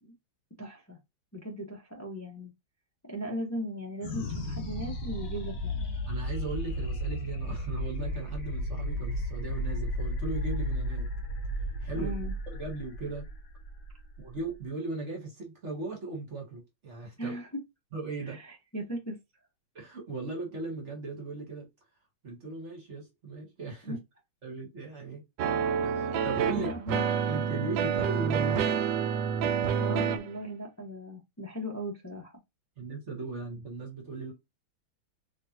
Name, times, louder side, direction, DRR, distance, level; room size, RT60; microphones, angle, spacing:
voice 1, 0.6-1.0 1.3-2.5 3.1-5.9 11.9-12.3 17.2-17.6 18.2-19.2 23.8-24.0 26.5-27.0 29.7-32.4, equal, 15° left, 0.5 m, -38 dB
sound 1, 4.0-14.7, equal, 65° left, 1.9 m, -34 dB
voice 2, 6.1-11.1 11.8-12.1 12.5-13.2 14.2-17.3 17.9-18.4 19.7-21.7 22.2-24.0 24.4-25.2 25.8-26.7 27.3-28.8 32.8-34.3, right 3 dB, 40° right, 1.3 m, -38 dB
sound 2, 25.4-30.4, right 7 dB, 75° right, 1.2 m, -28 dB
4.2 x 3.0 x 2.8 m
omnidirectional pair, 2.2 m